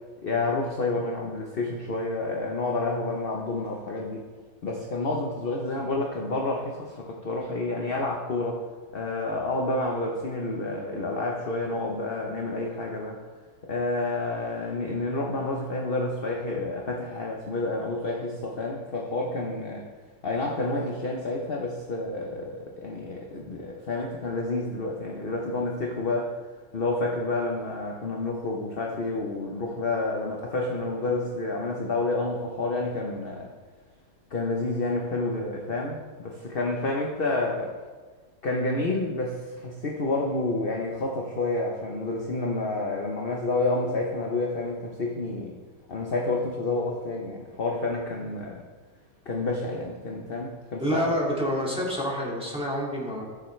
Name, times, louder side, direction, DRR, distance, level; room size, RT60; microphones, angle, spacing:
voice 1, 0.2-4.2 4.6-8.6 8.9-13.2 13.7-19.8 20.2-26.3 26.7-33.5 34.3-37.7 38.4-45.5 45.9-48.6 49.3-51.1, left 2 dB, 40° left, -1 dB, 0.9 m, -29 dB
voice 2, 50.8-53.2, equal, 5° right, -5 dB, 2.2 m, -27 dB
14.5 x 7.2 x 3.3 m, 1.4 s
omnidirectional pair, 2.0 m